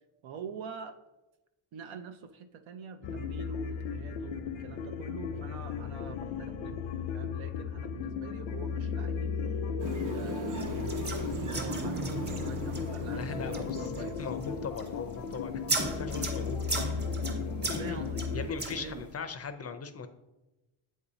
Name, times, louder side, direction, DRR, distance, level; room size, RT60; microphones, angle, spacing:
voice 1, 0.2-1.0 1.7-6.9 7.1-9.4 10.1-11.1 11.4-12.1 12.4-14.3 17.2-19.0, right 6 dB, 80° right, 9 dB, 0.7 m, -45 dB
sound 1, 3.0-18.5, left 6 dB, 80° left, 0.6 m, -35 dB
sound 2, 9.8-14.7, right 4 dB, 45° right, 0.6 m, -39 dB
sound 3, 10.6-19.1, right 2 dB, 20° right, 1.0 m, -38 dB
voice 2, 13.1-13.8 14.2-16.7 16.9-17.0 17.7-18.0 18.3-20.1, left 5 dB, 35° left, 9 dB, 0.4 m, -39 dB
8.0 x 2.8 x 4.9 m, 1.0 s
cardioid pair, 105°, 46 cm